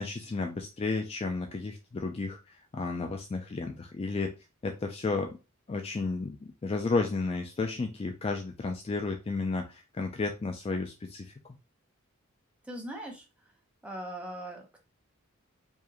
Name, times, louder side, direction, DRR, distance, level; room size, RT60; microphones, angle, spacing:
voice 1, 0.0-4.3 4.6-5.3 5.7-11.3, left 3 dB, 25° left, 4 dB, 0.3 m, -32 dB
voice 2, 12.7-13.2 13.8-14.8, right 1 dB, 5° right, 0 dB, 0.9 m, -40 dB
4.7 x 2.6 x 2.9 m, 0.29 s
head